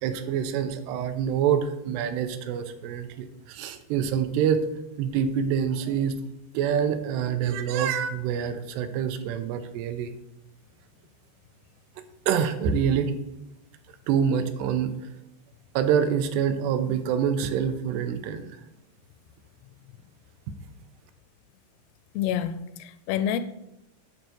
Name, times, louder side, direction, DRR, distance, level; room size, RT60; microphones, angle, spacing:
voice 1, 0.0-4.6 5.0-6.1 6.5-10.1 12.3-13.2 14.1-14.9 15.8-18.6, right 8 dB, 85° right, 9 dB, 2.8 m, -26 dB
voice 2, 22.1-23.4, left 9 dB, 85° left, 12 dB, 2.5 m, -28 dB
9.6 x 4.6 x 7.7 m, 0.87 s
omnidirectional pair, 4.7 m